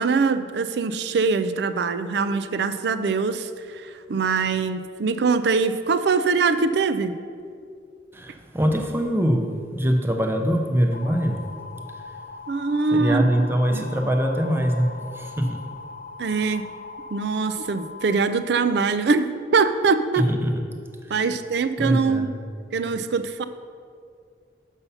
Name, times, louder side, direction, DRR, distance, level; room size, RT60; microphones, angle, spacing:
voice 1, 0.0-7.2 12.5-14.0 16.2-16.7 17.1-20.3 21.1-22.3 22.7-23.4, right 4 dB, 70° right, 12 dB, 0.4 m, -23 dB
voice 2, 8.1-11.4 11.9-12.1 12.9-15.6 20.2-20.6 21.0-21.1 21.8-22.3, equal, 15° right, 4 dB, 0.6 m, -23 dB
sound 1, 10.9-18.3, left 4 dB, 45° left, 0.5 m, -40 dB
7.1 x 5.5 x 5.5 m, 2.2 s
head